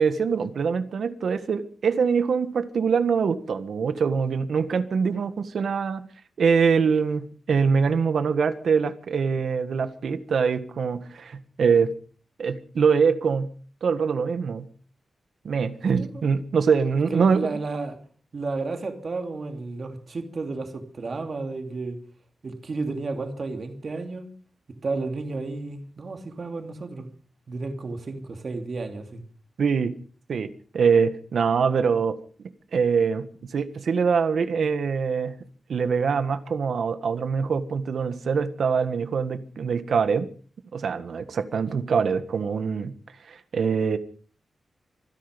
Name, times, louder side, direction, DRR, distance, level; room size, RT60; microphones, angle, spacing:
voice 1, 0.0-6.1 6.4-11.9 12.4-13.5 13.8-14.7 15.4-17.6 29.6-29.9 30.3-32.2 32.7-33.3 33.5-35.4 35.7-40.3 40.7-42.9 43.3-44.0, right 6 dB, 70° right, 1.6 m, -24 dB
voice 2, 17.1-18.0 18.3-22.0 22.4-24.3 24.8-27.1 27.5-29.2, right 3 dB, 45° right, 2.8 m, -32 dB
25.5 x 10.5 x 5.2 m
wide cardioid pair, 140°, 0 cm